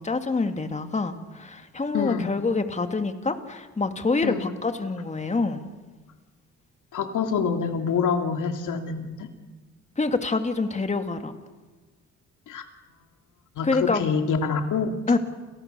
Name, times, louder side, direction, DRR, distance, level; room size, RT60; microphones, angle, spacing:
voice 1, 0.0-5.6 10.0-11.3 13.6-14.1 15.1-15.2, left 3 dB, 25° left, 8 dB, 2.2 m, -26 dB
voice 2, 1.9-2.3 4.2-4.4 6.9-9.3 12.5-12.6 13.6-15.0, left 6 dB, 80° left, 6 dB, 2.8 m, -26 dB
29.0 x 29.0 x 6.9 m, 1.3 s
cardioid pair, 125°, 30 cm